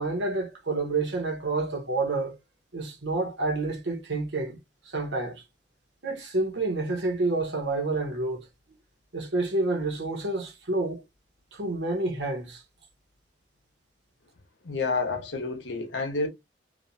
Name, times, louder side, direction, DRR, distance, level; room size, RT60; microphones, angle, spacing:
voice 1, 0.0-2.3 2.7-4.6 4.8-5.4 6.0-8.5 9.1-11.0 11.5-12.6, right 2 dB, 75° right, 1.1 m, -29 dB
voice 2, 14.6-16.3, left 3 dB, 85° left, 1.0 m, -29 dB
3.0 x 2.5 x 2.6 m
head